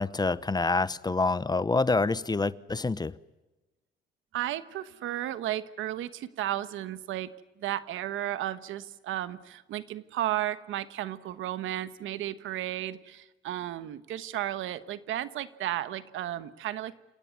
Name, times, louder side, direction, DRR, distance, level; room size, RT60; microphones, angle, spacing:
voice 1, 0.0-3.1, left 3 dB, 20° left, 18 dB, 0.9 m, -27 dB
voice 2, 4.3-7.3 7.6-16.9, right 13 dB, 85° right, 14 dB, 1.3 m, -34 dB
28.0 x 17.5 x 9.6 m, 1.1 s
cardioid pair, 90°, 20 cm